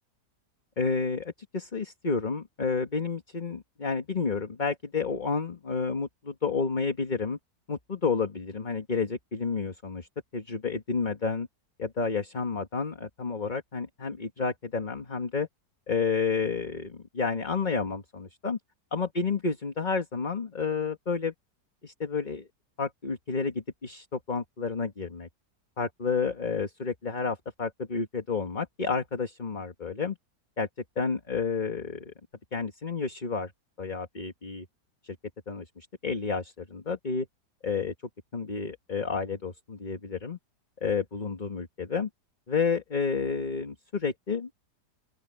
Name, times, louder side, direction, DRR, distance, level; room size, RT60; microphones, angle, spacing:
voice 1, 0.8-7.4 7.7-10.1 10.3-11.5 11.8-15.5 15.9-18.6 18.9-21.3 21.8-22.5 22.8-25.3 25.8-30.2 30.6-30.7 30.9-32.1 32.5-33.5 33.8-34.6 35.0-35.1 35.5-37.3 37.6-37.9 38.3-40.4 40.8-42.1 42.5-44.5, left 5 dB, 30° left, 1.6 m, -30 dB
open air
omnidirectional pair, 1.8 m